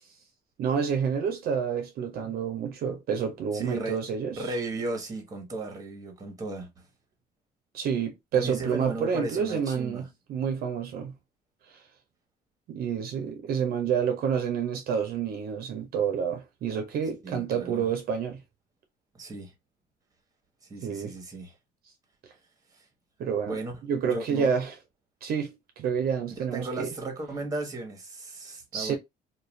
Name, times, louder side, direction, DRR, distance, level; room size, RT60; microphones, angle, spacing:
voice 1, 0.6-4.4 7.7-11.1 11.7-11.8 12.7-18.4 20.8-21.1 23.2-23.6 23.9-24.7 25.2-26.9 28.7-29.0, right 7 dB, 65° right, 0.6 m, -29 dB
voice 2, 3.5-4.0 4.4-6.8 8.3-10.1 17.2-17.9 19.1-19.5 20.7-21.5 22.7-22.8 23.4-23.7 24.0-24.5 26.3-29.0, right 2 dB, 20° right, 1.0 m, -35 dB
2.4 x 2.3 x 3.0 m
cardioid pair, 110°, 17 cm